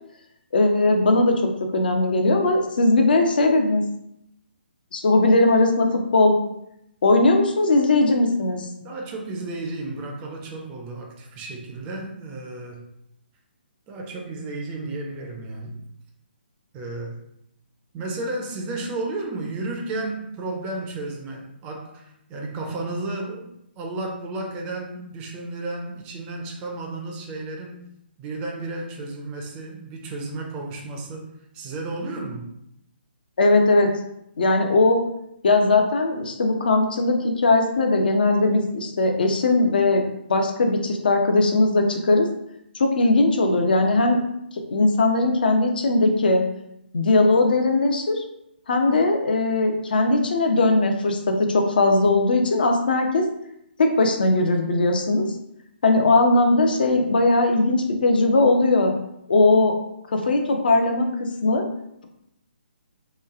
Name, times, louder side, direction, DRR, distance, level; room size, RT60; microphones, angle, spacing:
voice 1, 0.5-1.3 1.7-3.8 4.9-6.4 7.0-8.7 33.4-33.9 34.4-35.0 35.4-40.0 40.3-42.3 42.7-44.2 44.7-46.4 46.9-48.2 48.7-53.2 53.8-55.2 55.8-58.9 59.3-59.7 60.1-61.1 61.4-61.6, left 2 dB, 55° left, 3 dB, 0.6 m, -19 dB
voice 2, 8.8-12.9 13.9-15.8 16.7-17.2 17.9-23.5 23.8-27.8 28.2-32.5, right 2 dB, 20° right, 0 dB, 0.5 m, -33 dB
3.1 x 2.3 x 3.5 m, 0.78 s
figure-of-eight pair, 135°, 6 cm